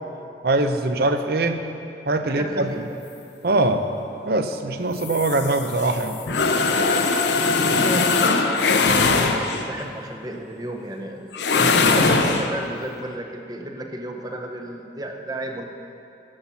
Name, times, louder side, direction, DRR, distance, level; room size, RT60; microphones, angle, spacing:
voice 1, 0.4-1.6 2.1-2.7 3.4-3.9 4.2-6.2, right 2 dB, 60° right, 7 dB, 0.7 m, -22 dB
voice 2, 2.3-2.8 7.7-15.6, right 1 dB, 20° right, 3 dB, 0.8 m, -33 dB
sound 1, 5.0-9.8 11.3-12.5, left 4 dB, 75° left, 0.7 m, -20 dB
15.0 x 5.8 x 5.6 m, 2.6 s
head